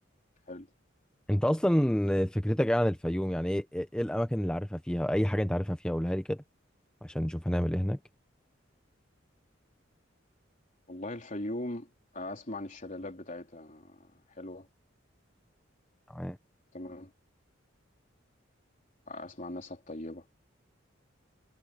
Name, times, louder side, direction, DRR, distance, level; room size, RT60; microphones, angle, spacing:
voice 1, 1.3-6.4 7.0-8.0 16.1-16.4, equal, 5° left, 0.7 m, -28 dB
voice 2, 10.9-11.9 12.1-14.7 16.7-17.1 19.1-20.3, left 1 dB, 40° left, 3.8 m, -40 dB
head